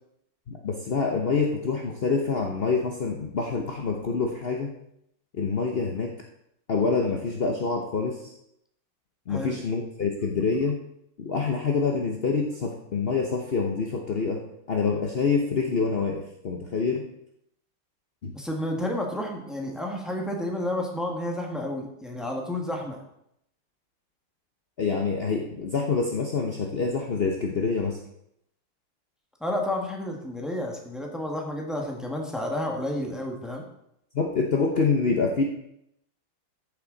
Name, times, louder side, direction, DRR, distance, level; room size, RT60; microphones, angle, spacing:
voice 1, 0.5-4.7 5.3-6.1 6.7-8.3 9.3-10.8 11.2-14.4 14.7-17.1 18.2-18.3 24.8-28.0 34.1-35.4, left 4 dB, 60° left, 1 dB, 0.6 m, -26 dB
voice 2, 18.3-23.0 29.4-33.6, left 1 dB, ahead, 0 dB, 1.3 m, -31 dB
14.0 x 7.1 x 3.9 m, 0.76 s
omnidirectional pair, 2.4 m